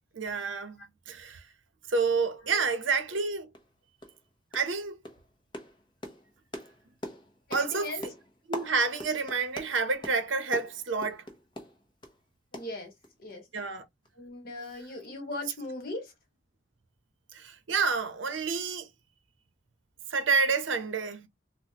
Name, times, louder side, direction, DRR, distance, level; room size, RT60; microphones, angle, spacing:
voice 1, 0.1-1.4 1.9-3.5 4.5-5.0 7.5-7.9 8.5-11.2 13.5-13.8 17.3-18.9 20.1-21.3, right 4 dB, 75° right, 0.8 m, -29 dB
sound 1, 3.5-3.7 4.0-4.2 4.5-4.8 5.0-12.2 12.5-13.3 13.6-13.7 14.0-14.1, left 1 dB, 25° left, 0.8 m, -43 dB
voice 2, 7.5-8.0 12.5-12.9 13.2-13.4 14.2-16.1, left 2 dB, 50° left, 1.5 m, -38 dB
4.1 x 2.2 x 2.8 m
head